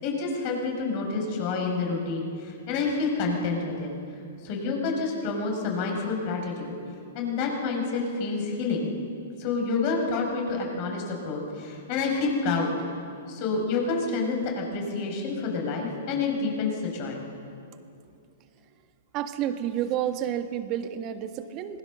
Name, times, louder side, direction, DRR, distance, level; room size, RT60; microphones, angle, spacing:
voice 1, 0.0-3.9 4.4-6.8 7.1-8.9 9.4-12.7 13.3-17.2, left 4 dB, 45° left, 1 dB, 6.4 m, -28 dB
voice 2, 19.1-21.8, right 10 dB, 35° right, 8 dB, 1.7 m, -30 dB
26.0 x 20.0 x 6.7 m, 2.5 s
hypercardioid pair, 120°, 0 cm